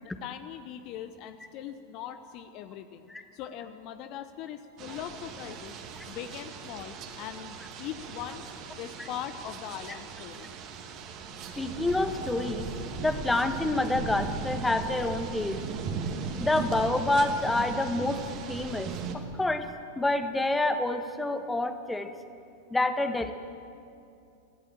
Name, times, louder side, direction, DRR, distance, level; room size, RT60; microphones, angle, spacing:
voice 1, 0.0-5.7 6.1-8.4 8.8-10.5, left 10 dB, 40° left, 10 dB, 0.9 m, -41 dB
sound 1, 4.8-19.2, right 5 dB, 35° right, 2.4 m, -38 dB
voice 2, 11.6-12.7 13.0-15.6 16.4-18.2 18.5-19.7 20.0-22.1 22.7-23.3, left 2 dB, 10° left, 9 dB, 1.4 m, -28 dB
25.0 x 16.5 x 7.7 m, 2.6 s
figure-of-eight pair, 90°, 0 cm